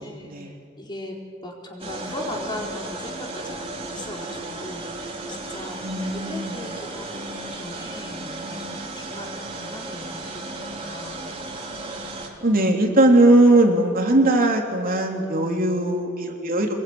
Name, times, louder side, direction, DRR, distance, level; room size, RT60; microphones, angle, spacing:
voice 1, 0.0-11.2, left 1 dB, 25° left, 0 dB, 4.4 m, -38 dB
sound 1, 1.8-12.3, right 2 dB, 30° right, 3.9 m, -34 dB
voice 2, 5.8-6.6 12.4-16.7, right 1 dB, 50° right, 1 dB, 3.3 m, -19 dB
26.5 x 21.5 x 9.6 m, 2.3 s
head